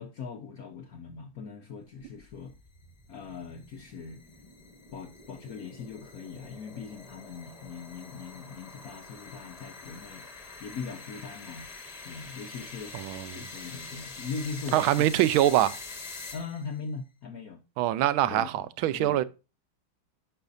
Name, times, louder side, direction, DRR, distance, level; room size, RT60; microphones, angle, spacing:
voice 1, 0.0-2.5 3.1-4.2 4.9-10.2 10.6-11.7 12.0-12.9 13.3-15.0 16.3-17.6 18.2-18.7 18.9-19.2, left 5 dB, 60° left, 1.0 m, -40 dB
sound 1, 2.0-16.8, left 3 dB, 25° left, 1.0 m, -45 dB
voice 2, 12.9-13.4 14.7-15.8 17.8-19.2, right 13 dB, 85° right, 1.4 m, -24 dB
10.0 x 5.6 x 2.6 m
omnidirectional pair, 2.2 m